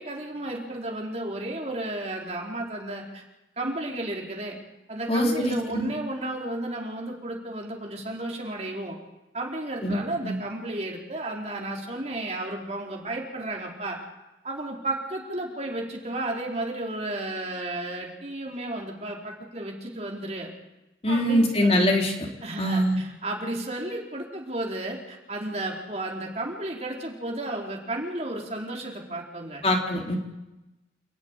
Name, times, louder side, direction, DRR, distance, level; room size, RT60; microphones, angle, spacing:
voice 1, 0.0-3.2 3.6-4.6 4.9-9.0 9.3-14.0 14.4-20.5 21.1-21.9 22.4-29.6, right 1 dB, 35° right, 0 dB, 4.3 m, -33 dB
voice 2, 5.1-5.9 9.8-10.4 21.0-22.3 22.6-23.0 29.6-30.2, equal, 35° left, 1 dB, 3.3 m, -23 dB
28.5 x 12.0 x 9.9 m, 0.98 s
head